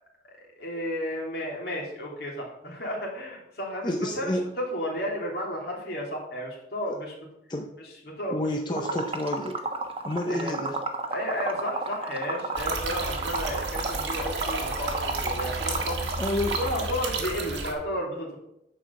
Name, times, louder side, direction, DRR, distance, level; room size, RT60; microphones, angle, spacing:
voice 1, 0.6-7.1 8.1-8.5 8.8-9.0 10.3-10.7 11.1-14.9 15.2-16.0 16.6-18.4, equal, 60° left, -2 dB, 3.0 m, -32 dB
voice 2, 3.8-4.5 7.5-7.7 8.3-9.6 10.0-10.8 16.2-16.6, left 1 dB, 25° left, 3 dB, 0.6 m, -29 dB
Liquid, 8.8-16.7, right 3 dB, 30° right, 1.1 m, -32 dB
sound 1, 12.5-17.7, right 3 dB, 85° right, 1.7 m, -32 dB
10.0 x 4.7 x 7.0 m, 0.81 s
head